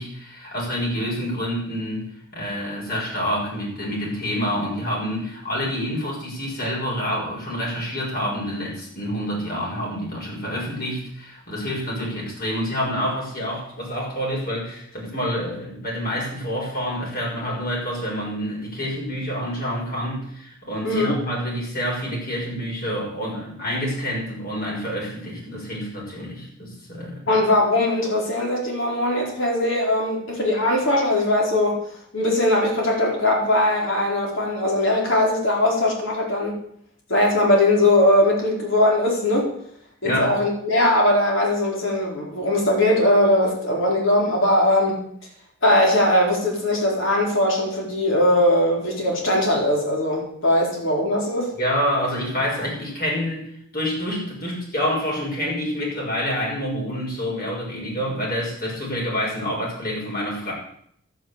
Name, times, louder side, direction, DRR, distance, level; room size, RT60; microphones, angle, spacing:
voice 1, 0.0-2.1 2.3-27.4 40.0-40.4 51.5-53.5 53.7-60.5, equal, 45° left, -3 dB, 6.7 m, -27 dB
voice 2, 20.8-21.2 27.3-31.8 32.1-36.6 37.1-39.5 40.0-45.0 45.6-51.5, left 1 dB, 65° left, -2 dB, 4.6 m, -20 dB
11.5 x 9.4 x 8.3 m, 0.68 s
head